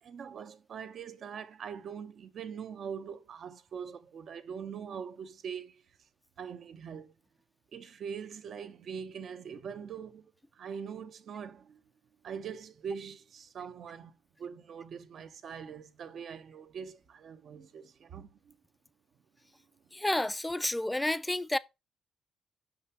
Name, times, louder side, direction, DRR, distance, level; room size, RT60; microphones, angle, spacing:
voice 1, 0.0-5.8 6.4-7.1 7.7-11.8 12.2-18.5, right 7 dB, 60° right, 0.8 m, -43 dB
voice 2, 19.9-21.6, left 1 dB, 10° left, 0.4 m, -30 dB
5.9 x 5.2 x 4.3 m
cardioid pair, 90°, 0 cm